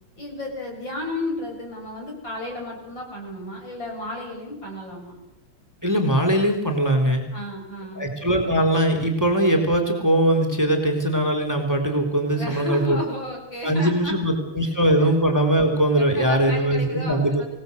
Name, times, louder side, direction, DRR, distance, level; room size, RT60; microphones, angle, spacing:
voice 1, 0.2-5.1 7.3-8.1 12.4-14.7 15.0-15.1 15.9-17.4, left 1 dB, 65° left, 0 dB, 7.9 m, -33 dB
voice 2, 5.8-7.2 8.0-13.0 13.6-17.4, right 1 dB, 10° right, 2 dB, 3.6 m, -21 dB
26.0 x 18.5 x 8.1 m, 0.87 s
omnidirectional pair, 2.2 m